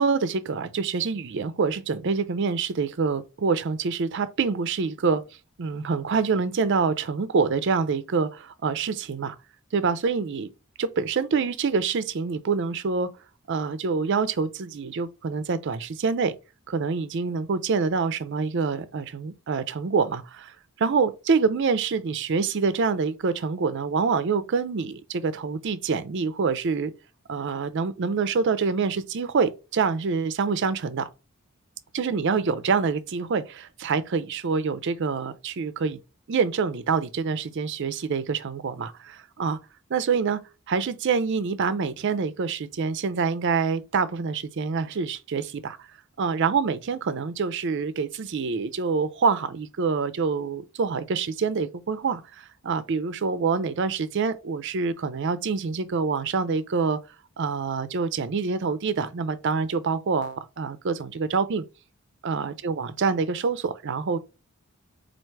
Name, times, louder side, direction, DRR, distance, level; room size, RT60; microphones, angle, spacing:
voice 1, 0.0-5.2 5.6-9.4 9.7-10.5 10.8-13.1 13.5-16.3 16.7-26.9 27.3-31.1 31.9-36.0 36.3-39.6 39.9-40.4 40.7-45.9 46.2-57.0 57.4-61.6 62.2-64.2, right 5 dB, 55° right, 0.4 m, -26 dB
4.5 x 2.4 x 4.5 m
head